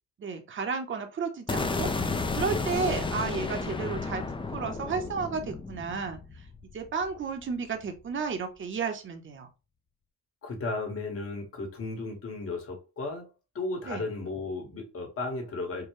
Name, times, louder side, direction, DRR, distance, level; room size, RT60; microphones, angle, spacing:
voice 1, 0.2-4.2 4.5-6.5 6.7-9.5 13.9-14.0, right 5 dB, 40° right, 0.9 m, -33 dB
sound 1, 1.5-7.5, left 3 dB, 15° left, 0.5 m, -32 dB
voice 2, 10.4-13.3 13.5-15.9, left 3 dB, 50° left, 1.5 m, -34 dB
4.6 x 2.2 x 3.2 m
cardioid pair, 90°, 30 cm